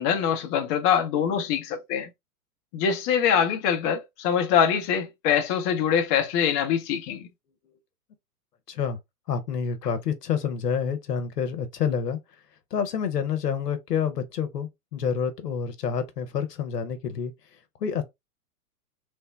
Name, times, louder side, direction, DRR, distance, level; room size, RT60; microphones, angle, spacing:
voice 1, 0.0-2.1 2.7-7.3, left 8 dB, 30° left, 0.7 m, -24 dB
voice 2, 8.7-9.0 9.3-12.2 12.7-17.3 17.8-18.0, left 7 dB, 85° left, 0.8 m, -28 dB
3.2 x 2.2 x 3.1 m
hypercardioid pair, 110°, 46 cm